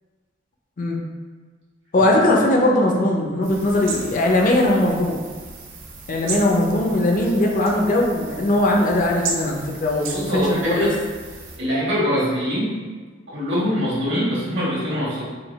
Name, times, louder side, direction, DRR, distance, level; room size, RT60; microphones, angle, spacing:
voice 1, 1.9-5.3 6.1-10.9, left 1 dB, 45° left, 0 dB, 0.5 m, -19 dB
sound 1, 3.4-11.6, right 4 dB, 80° right, 0.6 m, -35 dB
voice 2, 10.1-10.9 11.6-12.8 13.3-15.2, equal, 65° right, -7 dB, 1.4 m, -23 dB
3.8 x 2.3 x 3.4 m, 1.5 s
head